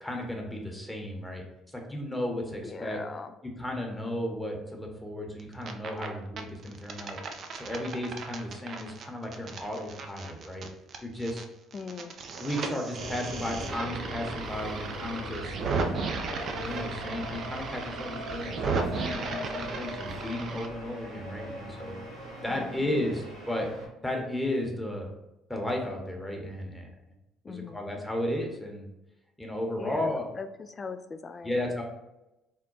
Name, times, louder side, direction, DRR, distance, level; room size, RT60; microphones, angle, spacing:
voice 1, 0.0-3.0 3.4-7.2 7.5-10.7 11.0-11.5 12.4-15.6 16.5-22.0 22.4-23.7 24.0-25.1 25.5-26.9 27.5-28.9 29.4-30.3 31.4-31.8, left 1 dB, 10° left, 1 dB, 1.0 m, -34 dB
voice 2, 2.6-3.4 11.7-12.2 22.5-23.1 27.4-27.8 29.8-31.8, left 4 dB, 35° left, 10 dB, 0.4 m, -41 dB
sound 1, 5.4-6.1 6.4-11.4 11.7-20.7, right 4 dB, 55° right, 0.4 m, -35 dB
sound 2, 13.0-23.9, equal, 90° right, 1.2 m, -40 dB
3.7 x 2.2 x 3.8 m, 0.94 s
hypercardioid pair, 60°, 0 cm